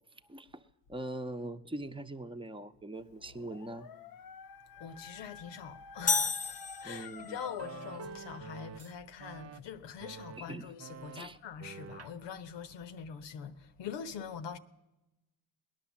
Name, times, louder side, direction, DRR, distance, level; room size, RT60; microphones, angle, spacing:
voice 1, 0.2-3.9 6.8-7.4 10.4-10.7 11.1-11.4, right 1 dB, 10° right, 0.9 m, -42 dB
Dog, 3.1-8.2, left 6 dB, 50° left, 0.7 m, -49 dB
voice 2, 4.8-14.6, left 7 dB, 75° left, 1.0 m, -44 dB
sound 1, 6.1-7.5, left 5 dB, 20° left, 0.6 m, -32 dB
sound 2, 7.4-8.9 9.2-9.6 10.0-10.4 10.8-11.2 11.6-12.1, right 6 dB, 35° right, 0.5 m, -47 dB
19.0 x 10.5 x 7.3 m
supercardioid pair, 55°, 44 cm